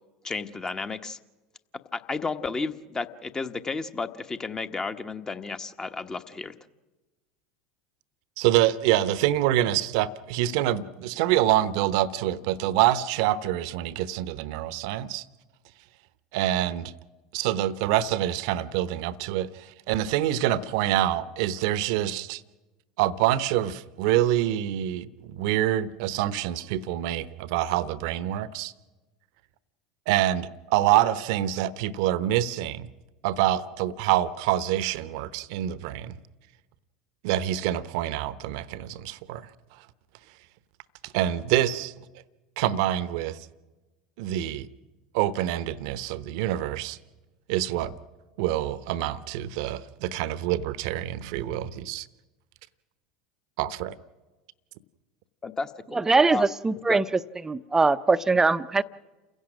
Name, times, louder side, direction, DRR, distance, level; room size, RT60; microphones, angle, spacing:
voice 1, 0.2-1.2 1.9-6.5 55.4-56.0 56.3-56.4 56.9-57.0, left 4 dB, 20° left, 1.2 m, -32 dB
voice 2, 8.4-15.2 16.3-16.9 17.3-22.4 23.0-28.7 30.1-32.9 33.2-36.1 37.2-39.4 41.1-41.9 42.6-43.4 44.2-44.7 45.1-47.0 47.5-47.9 48.4-52.1 53.6-54.0, right 13 dB, 60° right, 0.9 m, -26 dB
voice 3, 55.9-57.0 57.4-58.8, right 3 dB, 15° right, 0.7 m, -22 dB
29.0 x 16.5 x 6.2 m
hypercardioid pair, 80°, 3 cm